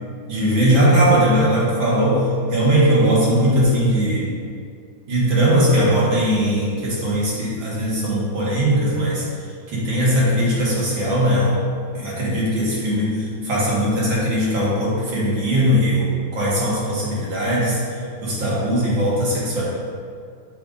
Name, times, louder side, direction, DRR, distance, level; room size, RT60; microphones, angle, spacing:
voice 1, 0.3-4.3 5.1-9.2 9.7-11.6 11.9-17.8 18.2-19.6, equal, 70° right, -7 dB, 2.2 m, -19 dB
7.6 x 2.6 x 5.0 m, 2.2 s
omnidirectional pair, 2.2 m